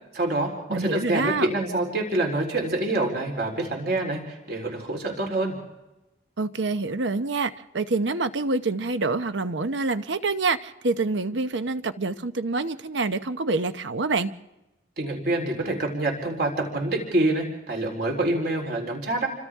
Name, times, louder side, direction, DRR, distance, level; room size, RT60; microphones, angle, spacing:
voice 1, 0.1-5.5 15.0-19.3, right 2 dB, 60° right, 2 dB, 4.0 m, -26 dB
voice 2, 0.7-1.5 6.4-14.3, right 3 dB, 80° right, 11 dB, 0.9 m, -26 dB
29.0 x 25.0 x 3.6 m, 0.98 s
head